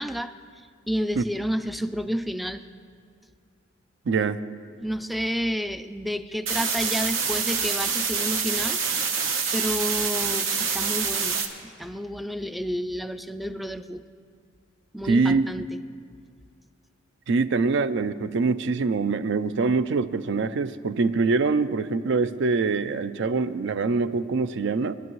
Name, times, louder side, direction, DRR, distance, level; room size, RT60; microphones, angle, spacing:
voice 1, 0.0-2.7 4.8-8.8 9.5-11.4 11.6-14.0 14.9-15.7, equal, ahead, 10 dB, 0.3 m, -30 dB
voice 2, 4.1-4.4 15.0-15.5 17.3-24.9, right 4 dB, 65° right, 14 dB, 0.4 m, -24 dB
sound 1, 6.5-11.5, right 5 dB, 85° right, 1.1 m, -26 dB
21.0 x 11.0 x 3.1 m, 2.2 s
head